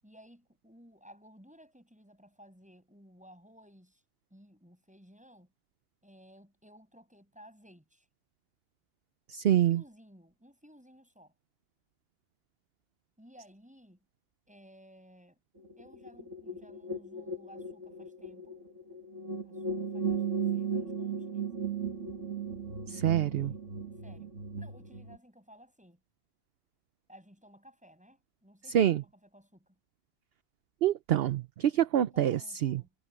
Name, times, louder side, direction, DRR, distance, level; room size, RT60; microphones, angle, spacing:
voice 1, 0.0-4.0 4.3-5.5 6.0-8.1 9.4-11.3 13.2-14.0 14.5-15.4 15.8-18.6 19.4-21.5 22.8-23.6 24.0-26.0 27.1-29.7 32.1-32.9, equal, 5° right, 7.9 m, -57 dB
voice 2, 9.3-9.8 22.9-23.5 28.7-29.0 30.8-32.8, right 11 dB, 60° right, 0.8 m, -26 dB
sound 1, 15.6-25.2, right 5 dB, 80° right, 2.4 m, -36 dB
omnidirectional pair, 1.2 m